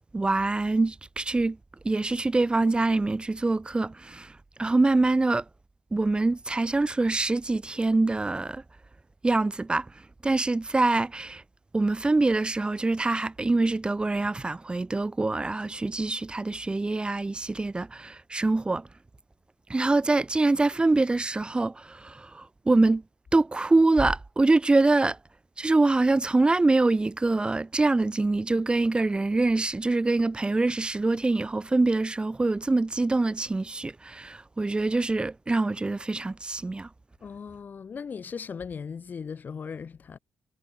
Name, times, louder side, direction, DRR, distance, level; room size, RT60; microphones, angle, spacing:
voice 1, 0.0-1.6 1.8-5.4 5.9-8.6 9.2-9.9 10.2-11.4 11.7-18.9 19.7-23.0 23.3-25.2 25.6-36.9, right 2 dB, 25° right, 3.4 m, -24 dB
voice 2, 37.2-40.2, left 6 dB, 45° left, 5.6 m, -38 dB
figure-of-eight pair, 40°, 4 cm